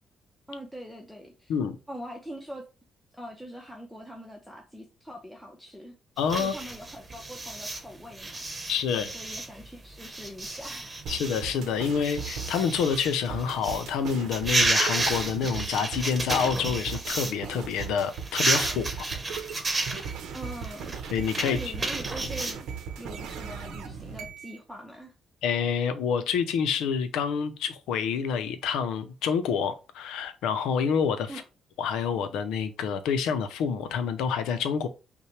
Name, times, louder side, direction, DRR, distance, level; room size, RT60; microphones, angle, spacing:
voice 1, 0.5-1.5 1.9-2.7 3.1-5.9 6.4-10.9 20.3-21.0 21.4-22.7 23.0-25.1 31.3-31.4, equal, ahead, 0.8 m, -43 dB
voice 2, 6.2-6.6 8.7-9.1 11.1-19.1 21.1-21.6 25.4-31.3 31.8-34.9, left 7 dB, 90° left, 0.6 m, -27 dB
sound 1, 6.2-17.4 17.7-22.5, right 2 dB, 25° right, 1.0 m, -31 dB
sound 2, 11.1-24.6, right 6 dB, 85° right, 0.8 m, -38 dB
5.5 x 2.2 x 3.2 m
cardioid pair, 90°, 0 cm